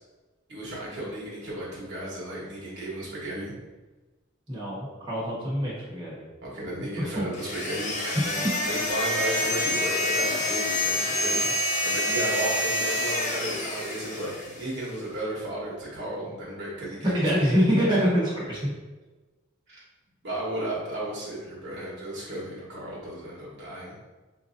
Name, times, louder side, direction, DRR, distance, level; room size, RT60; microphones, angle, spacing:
voice 1, 0.5-3.5 6.4-11.5 11.8-17.6 19.7-19.8 20.2-24.0, right 1 dB, 60° right, -7 dB, 1.2 m, -34 dB
voice 2, 4.5-6.2 7.0-7.2 17.1-18.7, equal, 25° right, -8 dB, 1.2 m, -25 dB
sound 1, 7.3-14.7, left 1 dB, 40° left, 0.6 m, -27 dB
4.5 x 2.6 x 2.5 m, 1.2 s
head